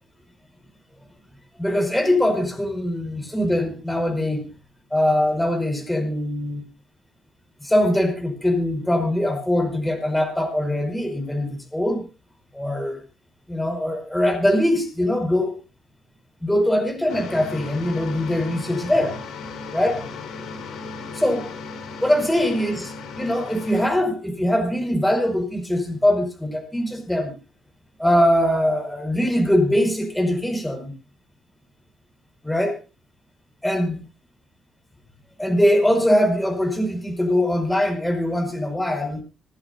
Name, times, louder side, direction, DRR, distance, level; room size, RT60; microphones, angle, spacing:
voice 1, 1.6-4.5 4.9-6.6 7.6-12.1 12.5-13.0 13.5-15.5 16.4-19.2 19.7-20.1 21.1-21.5 22.0-27.3 28.0-30.9 32.4-32.8 33.6-34.0 35.4-39.2, left 1 dB, 5° left, 4 dB, 5.3 m, -22 dB
sound 1, 17.1-23.9, left 4 dB, 80° left, 4.5 m, -36 dB
26.0 x 11.0 x 2.7 m, 0.29 s
cardioid pair, 90°, 0 cm